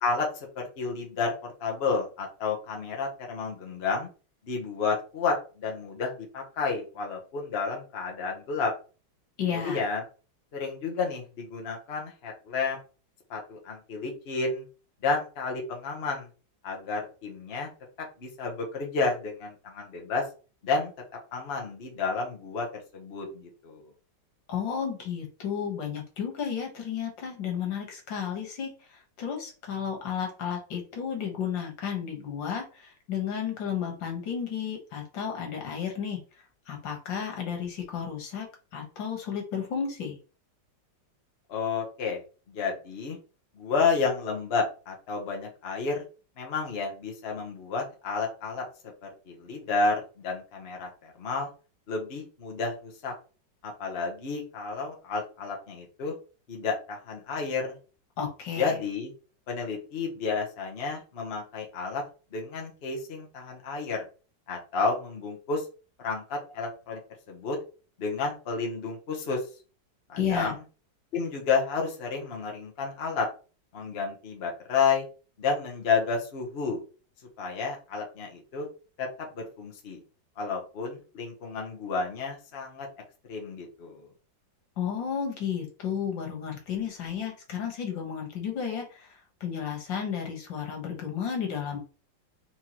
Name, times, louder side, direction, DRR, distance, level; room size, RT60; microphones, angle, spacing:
voice 1, 0.0-4.1 4.4-8.7 9.5-10.0 10.5-12.8 13.3-14.7 15.0-16.3 16.6-17.7 18.0-20.2 20.6-20.9 21.3-22.7 22.9-23.8 41.5-42.2 42.5-43.2 43.5-46.0 46.4-48.6 49.0-51.5 51.9-53.1 53.6-56.1 56.5-57.8 58.6-59.1 59.5-62.0 62.3-64.0 64.5-65.6 66.0-67.0 67.3-67.6 68.0-69.4 70.1-70.6 71.1-73.3 73.7-75.1 75.4-76.8 77.4-78.7 79.0-79.1 79.3-80.0 80.4-82.9 83.3-84.1, left 4 dB, 40° left, 0 dB, 1.1 m, -31 dB
voice 2, 9.4-9.8 24.5-40.2 58.2-58.8 70.2-70.6 84.8-91.8, left 7 dB, 85° left, 1 dB, 2.0 m, -33 dB
4.4 x 3.7 x 2.9 m, 0.36 s
omnidirectional pair, 2.0 m